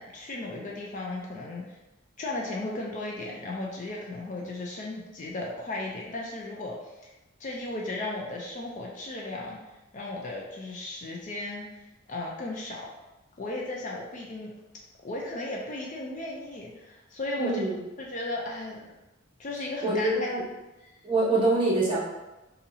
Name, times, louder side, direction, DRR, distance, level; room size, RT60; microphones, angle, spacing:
voice 1, 0.0-1.8 2.2-7.1 7.4-9.6 9.9-11.7 12.1-12.9 13.4-14.5 15.0-17.6 18.0-18.9 19.4-20.1 20.8-20.9, left 2 dB, 35° left, -2 dB, 0.4 m, -35 dB
voice 2, 17.4-17.8 19.8-20.4 21.0-22.0, right 2 dB, 25° right, -6 dB, 0.9 m, -25 dB
2.7 x 2.7 x 4.0 m, 1.0 s
head